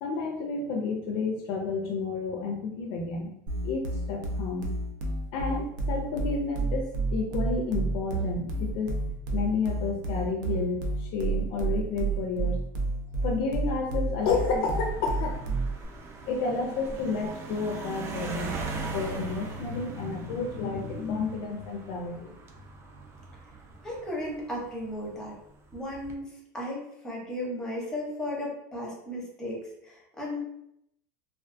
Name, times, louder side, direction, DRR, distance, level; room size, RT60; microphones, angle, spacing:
voice 1, 0.0-3.3 3.6-4.7 5.3-9.0 9.3-12.6 13.2-15.6 16.3-18.5 18.9-22.4, left 4 dB, 50° left, 1 dB, 0.4 m, -31 dB
sound 1, 3.5-15.8, right 3 dB, 80° right, 0.6 m, -30 dB
sound 2, 14.2-24.9 25.7-26.1, right 3 dB, 25° right, 0.4 m, -40 dB
voice 2, 23.8-25.3 25.7-30.4, left 1 dB, 5° left, -3 dB, 0.7 m, -35 dB
2.3 x 2.2 x 2.5 m, 0.78 s
supercardioid pair, 150°, 10 cm